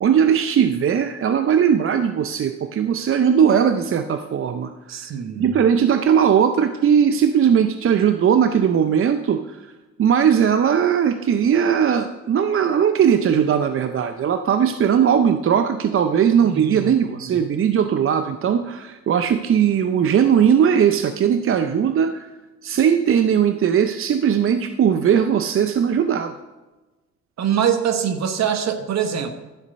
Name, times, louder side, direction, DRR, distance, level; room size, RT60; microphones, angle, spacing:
voice 1, 0.0-9.7 10.0-22.3 22.6-26.3, right 8 dB, 45° right, 9 dB, 0.6 m, -19 dB
voice 2, 4.9-5.6 16.4-16.9 17.2-17.4 27.4-29.3, right 8 dB, 60° right, 8 dB, 1.2 m, -23 dB
11.5 x 5.1 x 6.7 m, 1.1 s
cardioid pair, 90°, 30 cm